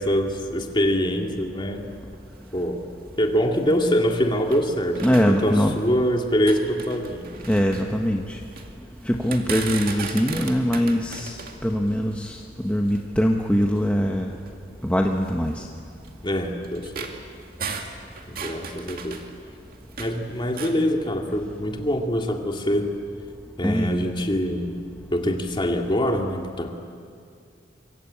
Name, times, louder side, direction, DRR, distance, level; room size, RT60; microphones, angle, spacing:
voice 1, 0.0-1.9 2.5-2.8 3.2-7.3 16.2-17.1 18.2-19.2 20.0-22.9 23.6-24.8 25.1-26.7, equal, 25° left, 2 dB, 2.4 m, -24 dB
sound 1, 1.7-4.7 5.0-6.0 6.3-8.7 9.1-13.1 13.8-13.9 14.3-14.5 15.2-20.2 20.5-20.8, right 5 dB, 50° right, 2.2 m, -37 dB
voice 2, 5.0-5.8 7.5-8.4 9.0-14.3 14.8-15.6 23.6-23.9, equal, 5° left, 1 dB, 1.2 m, -22 dB
25.0 x 24.0 x 8.6 m, 2.4 s
head